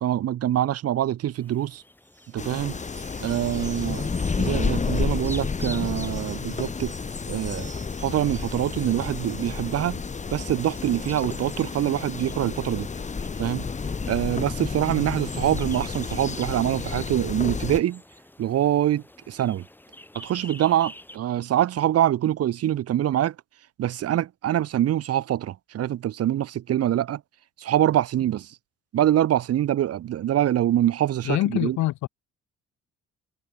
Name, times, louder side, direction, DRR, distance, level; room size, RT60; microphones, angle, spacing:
voice 1, 0.0-1.8 2.3-2.8 3.2-4.1 4.4-6.9 7.3-7.7 8.0-10.0 10.3-12.9 13.4-13.6 14.1-18.0 18.4-19.6 20.1-23.3 23.8-27.2 27.6-28.5 28.9-31.8, right 12 dB, 55° right, 0.6 m, -24 dB
sound 1, 1.3-21.2, left 1 dB, 5° left, 1.3 m, -48 dB
sound 2, 2.1-11.5, right 3 dB, 25° right, 4.0 m, -50 dB
sound 3, 2.4-17.8, left 5 dB, 25° left, 0.9 m, -30 dB
voice 2, 31.2-32.1, left 16 dB, 70° left, 0.5 m, -25 dB
cardioid pair, 90°, 30 cm